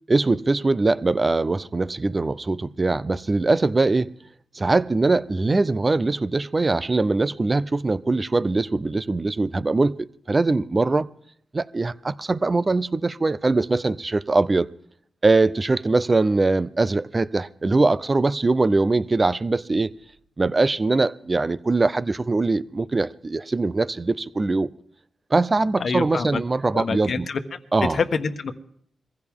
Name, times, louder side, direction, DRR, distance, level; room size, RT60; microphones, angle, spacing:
voice 1, 0.1-4.1 4.5-11.1 11.5-14.7 15.2-19.9 20.4-24.7 25.3-27.3 27.7-28.0, right 3 dB, 30° right, 0.7 m, -22 dB
voice 2, 25.8-26.4 26.7-27.4 27.9-28.5, left 5 dB, 60° left, 1.3 m, -26 dB
23.0 x 15.5 x 3.7 m
cardioid pair, 85°, 0 cm